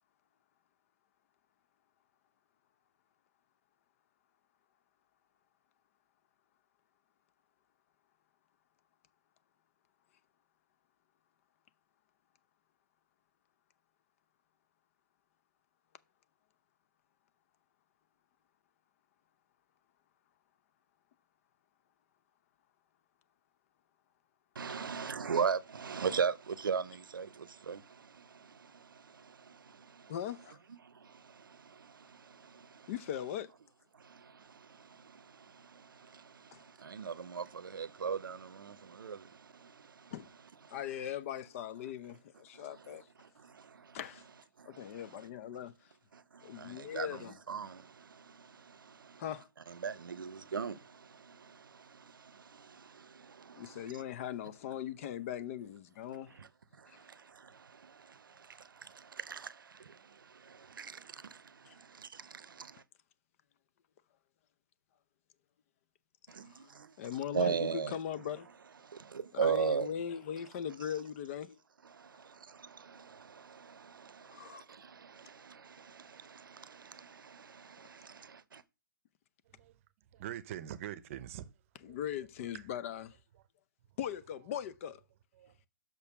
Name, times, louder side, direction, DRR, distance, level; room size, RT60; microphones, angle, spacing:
voice 1, 24.6-30.1 30.8-32.9 34.0-40.1 40.6-40.8 43.2-44.0 44.6-44.9 46.1-49.2 49.7-53.9 56.4-56.5 56.8-62.8 66.3-66.9 67.3-67.9 68.8-69.9 71.9-78.6, right 6 dB, 80° right, 0.7 m, -40 dB
voice 2, 30.1-30.6 32.9-33.5 36.5-36.6 40.1-40.3 40.7-43.1 43.9-44.2 44.7-45.9 46.4-47.4 49.2-49.5 53.6-56.3 56.9-57.0 61.7-61.8 66.5-66.6 67.0-68.5 69.3-71.6 74.3-74.6 81.8-83.2 84.0-85.0, left 9 dB, 40° left, 0.7 m, -40 dB
voice 3, 80.1-81.5 81.9-82.0 82.5-82.6 85.4-85.7, right 11 dB, 40° right, 0.8 m, -43 dB
6.0 x 5.3 x 6.0 m
hypercardioid pair, 140°, 11 cm